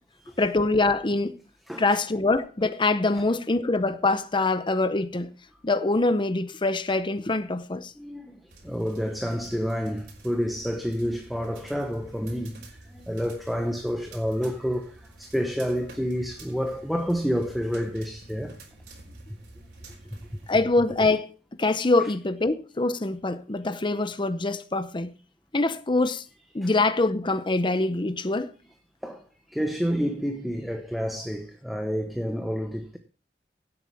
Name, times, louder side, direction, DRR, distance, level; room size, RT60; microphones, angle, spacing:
voice 1, 0.4-1.4 1.8-5.3 5.6-7.9 20.5-21.3 21.6-25.1 25.5-26.2 26.5-28.5, left 2 dB, 25° left, 0.7 m, -24 dB
voice 2, 1.7-2.0 8.0-8.4 8.6-12.6 12.9-18.5 26.6-26.7 29.0-29.2 29.5-33.0, equal, ahead, 1.1 m, -29 dB
sound 1, 8.5-20.5, right 2 dB, 65° right, 3.9 m, -49 dB
16.5 x 8.5 x 3.5 m
head